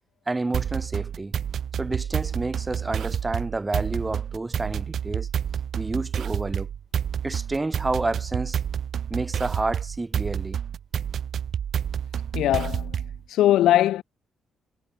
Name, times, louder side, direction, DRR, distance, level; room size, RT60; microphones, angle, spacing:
voice 1, 0.3-1.3 1.8-5.3 5.8-6.7 7.2-8.6 9.1-10.6, right 2 dB, 20° right, 6.4 m, -29 dB
sound 1, 0.5-13.2, right 8 dB, 60° right, 3.0 m, -29 dB
voice 2, 12.3-14.0, left 13 dB, 85° left, 1.3 m, -21 dB
cardioid pair, 90°, 0 cm